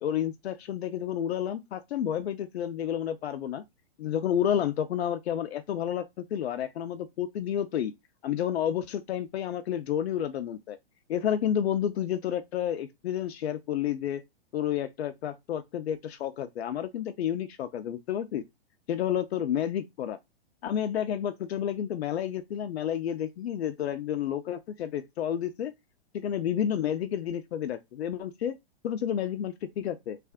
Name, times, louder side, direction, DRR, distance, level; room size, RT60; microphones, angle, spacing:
voice 1, 0.0-3.6 4.0-7.9 8.2-10.8 11.1-14.2 14.5-18.4 18.9-20.2 20.6-25.7 26.1-28.5 28.8-30.2, left 10 dB, 75° left, 0.6 m, -30 dB
3.3 x 2.4 x 3.5 m
hypercardioid pair, 145°, 32 cm